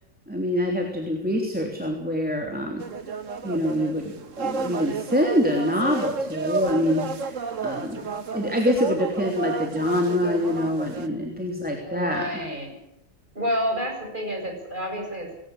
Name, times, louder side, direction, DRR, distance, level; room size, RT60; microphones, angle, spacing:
voice 1, 0.3-2.8 3.4-7.3 7.6-8.1 8.3-12.3, equal, 5° right, 1 dB, 3.1 m, -25 dB
sound 1, 2.8-11.1, right 4 dB, 45° right, 1.6 m, -32 dB
voice 2, 11.8-12.9 13.3-15.3, equal, 25° right, 2 dB, 7.9 m, -29 dB
19.5 x 18.0 x 9.7 m, 0.83 s
omnidirectional pair, 2.2 m